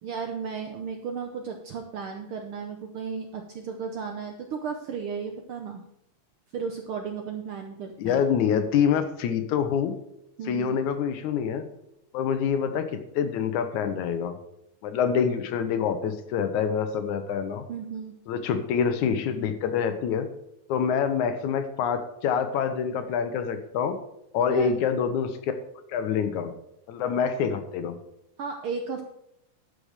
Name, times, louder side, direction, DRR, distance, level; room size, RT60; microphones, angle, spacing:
voice 1, 0.0-5.8 6.5-8.2 10.4-10.8 17.7-18.2 24.5-24.7 28.4-29.0, right 6 dB, 70° right, 4 dB, 1.3 m, -34 dB
voice 2, 8.0-9.9 10.5-11.7 12.1-14.4 14.8-17.6 18.3-20.3 20.7-24.0 24.3-25.5 25.9-26.5 26.9-28.0, left 7 dB, 85° left, 9 dB, 2.4 m, -26 dB
12.0 x 5.0 x 6.5 m, 0.79 s
omnidirectional pair, 3.3 m